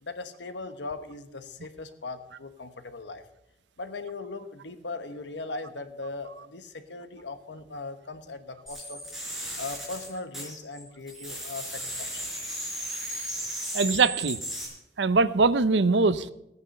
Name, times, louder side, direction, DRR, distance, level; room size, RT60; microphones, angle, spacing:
voice 1, 0.0-3.2 3.8-9.0 9.6-12.2, left 3 dB, 85° left, 9 dB, 1.2 m, -39 dB
sound 1, 8.7-10.8 11.1-14.7, right 1 dB, ahead, 4.7 m, -35 dB
voice 2, 13.7-14.4 15.0-16.3, right 4 dB, 80° right, 15 dB, 0.6 m, -22 dB
16.5 x 9.7 x 5.5 m, 0.87 s
head